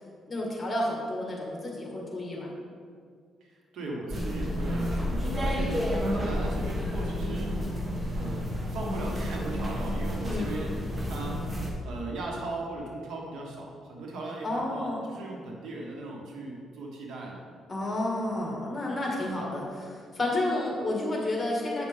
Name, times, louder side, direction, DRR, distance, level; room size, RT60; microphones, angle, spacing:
voice 1, 0.3-2.5 7.2-7.4 10.3-10.5 14.4-15.0 17.7-21.9, left 1 dB, 25° left, -2 dB, 2.1 m, -31 dB
voice 2, 3.4-7.6 8.1-10.8 11.1-11.4 11.8-17.4, right 2 dB, 75° right, -1 dB, 1.5 m, -38 dB
sound 1, 4.1-11.7, equal, 25° right, 1.4 m, -30 dB
8.9 x 6.1 x 3.6 m, 2.1 s
cardioid pair, 90°, 0 cm